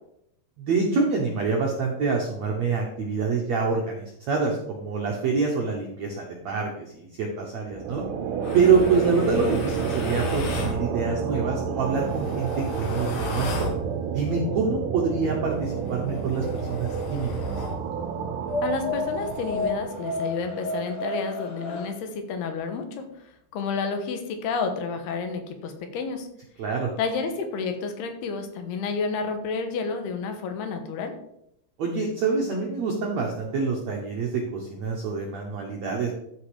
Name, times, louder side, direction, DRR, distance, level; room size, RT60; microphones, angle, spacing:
voice 1, 0.6-8.0 8.5-13.7 14.1-17.4 26.6-26.9 31.8-36.1, right 4 dB, 70° right, 0 dB, 1.6 m, -26 dB
sound 1, 7.7-20.8, right 7 dB, 90° right, 3.0 m, -30 dB
sound 2, 8.4-10.8 11.7-13.8 15.4-17.8 18.5-21.9, left 2 dB, 55° left, 2.0 m, -33 dB
voice 2, 18.6-23.1 23.5-26.3 27.0-31.2, left 5 dB, 75° left, 6 dB, 3.1 m, -30 dB
13.0 x 5.3 x 5.0 m, 0.78 s
omnidirectional pair, 4.8 m